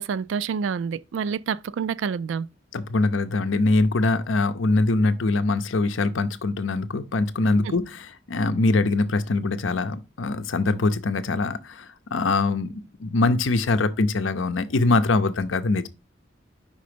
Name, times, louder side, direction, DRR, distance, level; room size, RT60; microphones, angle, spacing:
voice 1, 0.0-2.5 7.6-7.7, right 6 dB, 70° right, 0.3 m, -28 dB
voice 2, 2.7-15.9, left 3 dB, 90° left, 0.6 m, -23 dB
5.3 x 3.8 x 5.1 m
head